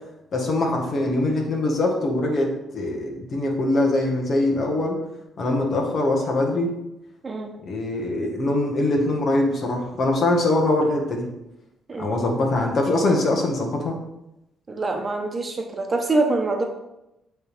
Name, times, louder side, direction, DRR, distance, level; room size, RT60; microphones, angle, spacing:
voice 1, 0.3-5.0 5.4-6.7 7.7-11.3 12.0-14.0, left 2 dB, 55° left, 1 dB, 1.7 m, -23 dB
voice 2, 14.7-16.6, right 2 dB, 30° right, 3 dB, 1.1 m, -25 dB
8.7 x 3.6 x 5.0 m, 0.90 s
cardioid pair, 90°, 0 cm